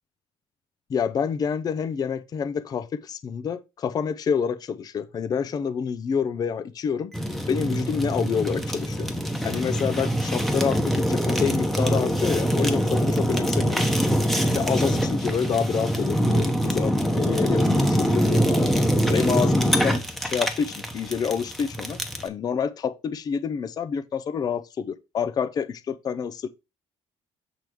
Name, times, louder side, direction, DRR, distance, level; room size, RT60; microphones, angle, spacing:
voice 1, 0.9-7.1 7.5-9.1 9.4-13.9 14.5-18.7 19.1-26.5, left 7 dB, 35° left, 0.5 m, -28 dB
Fire, 7.1-22.3, equal, ahead, 1.0 m, -24 dB
7.8 x 3.5 x 4.5 m
cardioid pair, 150°, 12 cm